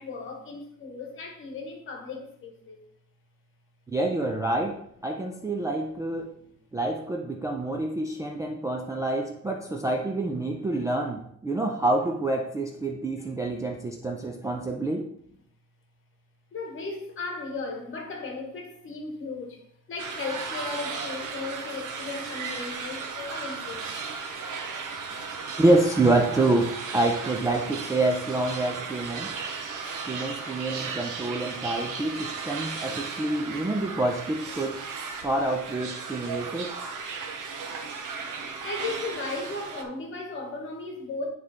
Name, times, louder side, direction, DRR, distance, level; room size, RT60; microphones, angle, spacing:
voice 1, 0.0-2.8 6.3-6.5 16.5-23.9 38.6-41.3, left 3 dB, 40° left, 1.2 m, -36 dB
voice 2, 3.9-6.3 6.7-15.1 25.6-29.3 30.1-34.8 35.2-36.7, right 2 dB, 10° right, 0.3 m, -27 dB
sound 1, 20.0-39.8, right 5 dB, 80° right, 0.8 m, -36 dB
9.3 x 3.2 x 3.4 m
cardioid pair, 175°, 31 cm